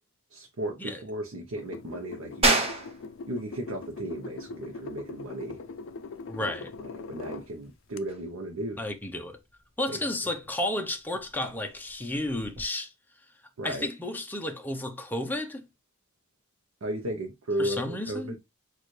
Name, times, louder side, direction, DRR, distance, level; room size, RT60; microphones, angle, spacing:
voice 1, 0.3-2.6 3.3-5.6 6.4-6.5 6.8-8.8 9.9-10.0 13.6-13.9 16.8-18.4, right 1 dB, 75° right, 0.8 m, -35 dB
sound 1, 1.6-7.5 8.0-8.1, left 4 dB, 65° left, 0.4 m, -42 dB
sound 2, 2.4-12.7, right 2 dB, 30° right, 1.3 m, -34 dB
voice 2, 6.3-6.7 8.8-9.4 9.8-12.9 13.6-15.7 17.6-18.4, left 1 dB, 10° left, 0.6 m, -32 dB
6.5 x 2.5 x 3.2 m
head